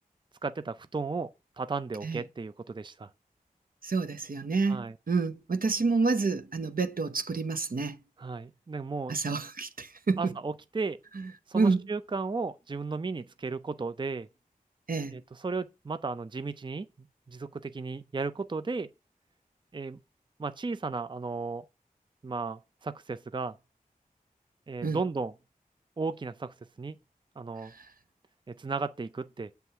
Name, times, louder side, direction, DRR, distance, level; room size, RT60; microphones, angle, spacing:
voice 1, 0.4-1.3 1.6-3.1 4.7-4.9 8.2-9.2 10.2-11.0 11.5-14.3 15.1-18.9 19.7-20.0 20.4-21.6 22.2-23.6 24.7-25.3 26.0-27.0 27.4-27.7 28.5-29.5, right 4 dB, 30° right, 0.5 m, -35 dB
voice 2, 3.8-8.0 9.1-10.3 11.2-11.8 14.9-15.2 24.8-25.0 27.6-27.9, right 4 dB, 70° right, 0.8 m, -29 dB
7.7 x 3.4 x 5.5 m
wide cardioid pair, 45°, 15 cm